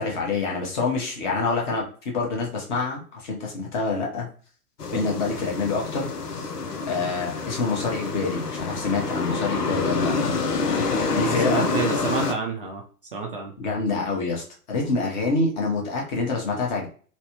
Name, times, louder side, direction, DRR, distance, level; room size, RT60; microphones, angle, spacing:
voice 1, 0.0-4.3 4.9-6.5 6.9-10.3 11.1-11.6 13.6-16.9, left 3 dB, 30° left, -1 dB, 0.9 m, -26 dB
sound 1, 4.8-12.3, left 4 dB, 80° left, 0.6 m, -27 dB
voice 2, 11.1-12.8 13.1-13.5, right 5 dB, 35° right, 1 dB, 0.5 m, -29 dB
3.1 x 2.0 x 2.9 m, 0.41 s
figure-of-eight pair, 110°, 46 cm